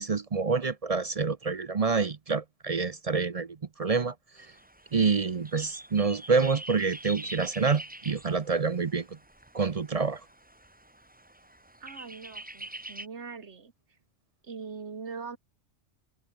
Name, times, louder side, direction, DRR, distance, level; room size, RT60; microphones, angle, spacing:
voice 1, 0.0-4.1 4.9-9.1 9.5-10.2, right 4 dB, 40° right, 0.7 m, -27 dB
sound 1, 4.4-13.1, right 1 dB, 10° right, 0.9 m, -45 dB
voice 2, 11.8-13.7 14.4-15.4, right 5 dB, 75° right, 2.0 m, -41 dB
omnidirectional pair, 1.2 m